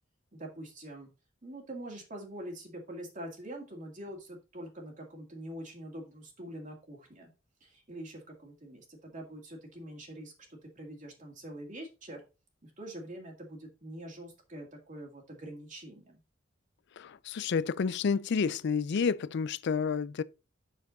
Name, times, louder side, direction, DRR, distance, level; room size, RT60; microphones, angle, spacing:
voice 1, 0.3-1.1 1.4-7.3 7.6-12.2 12.6-16.2, right 1 dB, 40° right, 2.0 m, -44 dB
voice 2, 17.0-20.2, left 5 dB, 60° left, 0.4 m, -30 dB
6.7 x 6.0 x 3.9 m
head